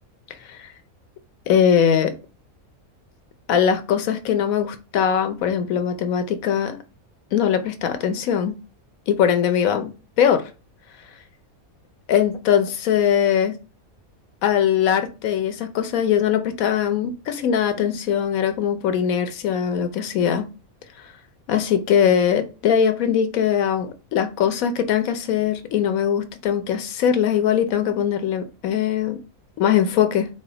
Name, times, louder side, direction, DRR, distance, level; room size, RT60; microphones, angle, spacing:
voice 1, 0.4-0.7 1.5-2.1 3.5-6.8 7.3-8.5 9.1-9.9 10.2-10.5 12.1-13.5 14.4-20.5 21.0-21.1 21.5-29.2 29.6-30.3, left 8 dB, 75° left, 1.0 m, -21 dB
4.1 x 3.2 x 3.8 m
omnidirectional pair, 1.5 m